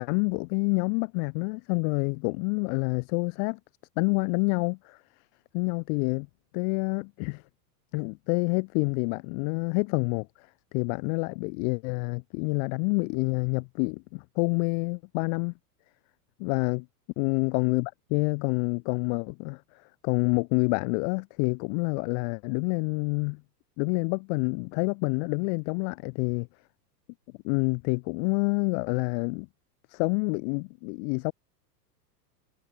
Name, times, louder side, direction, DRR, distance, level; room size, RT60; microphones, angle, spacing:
voice 1, 0.0-3.6 4.0-5.0 5.5-6.3 6.5-7.4 7.9-10.5 10.7-15.5 16.4-16.9 17.2-23.4 23.8-26.5 27.4-29.5 29.9-31.3, left 40 dB or more, 55° left, 3.3 m, -28 dB
hypercardioid pair, 115°, 49 cm